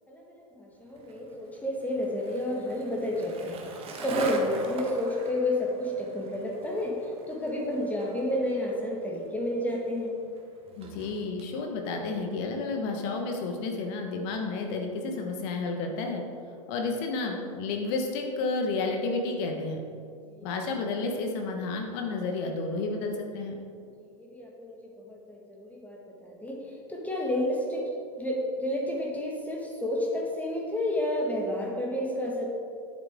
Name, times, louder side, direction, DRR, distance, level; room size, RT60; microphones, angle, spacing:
voice 1, 0.1-3.6 4.0-7.0 7.3-10.1 20.4-20.5 24.0-24.8 25.1-27.8 28.2-32.5, left 1 dB, 10° left, -2 dB, 1.8 m, -30 dB
Skateboard, 1.0-11.5, right 3 dB, 35° right, 1.4 m, -41 dB
voice 2, 10.8-16.2 16.7-19.8 20.4-23.6, left 3 dB, 50° left, 2 dB, 1.4 m, -31 dB
10.5 x 8.2 x 3.7 m, 2.4 s
hypercardioid pair, 95°, 18 cm